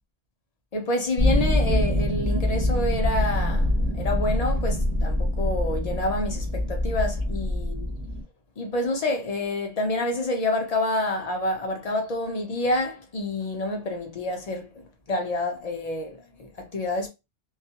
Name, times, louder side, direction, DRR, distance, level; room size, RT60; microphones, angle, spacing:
voice 1, 0.7-7.9 8.6-17.1, left 2 dB, 45° left, 0.5 m, -28 dB
sound 1, 1.2-8.2, left 1 dB, 35° right, 0.7 m, -24 dB
2.3 x 2.0 x 2.8 m
omnidirectional pair, 1.1 m